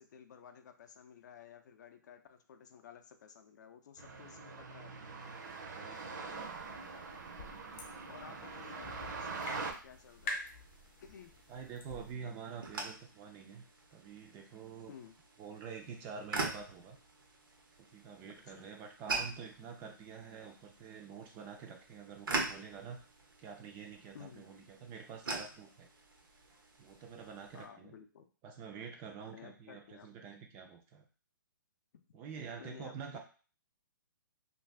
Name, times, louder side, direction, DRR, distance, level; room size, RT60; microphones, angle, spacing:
voice 1, 0.0-4.9 8.1-10.4 11.0-11.4 14.9-15.2 18.5-18.7 24.1-24.4 27.5-28.3 29.3-30.3 31.9-32.0 32.6-33.2, left 7 dB, 55° left, 7 dB, 0.5 m, -54 dB
sound 1, 4.0-9.7, right 4 dB, 60° right, 0.6 m, -43 dB
voice 2, 5.7-6.1 8.4-8.9 11.5-13.6 13.9-14.9 15.4-17.0 17.8-23.0 23.4-25.9 26.8-27.9 28.4-31.0 32.1-33.2, right 6 dB, 20° right, 3 dB, 0.3 m, -47 dB
sound 2, 6.3-12.1, left 2 dB, 35° left, 0.8 m, -47 dB
sound 3, 9.9-27.7, right 3 dB, 90° right, 0.8 m, -44 dB
2.6 x 2.3 x 3.3 m, 0.38 s
hypercardioid pair, 150°, 11 cm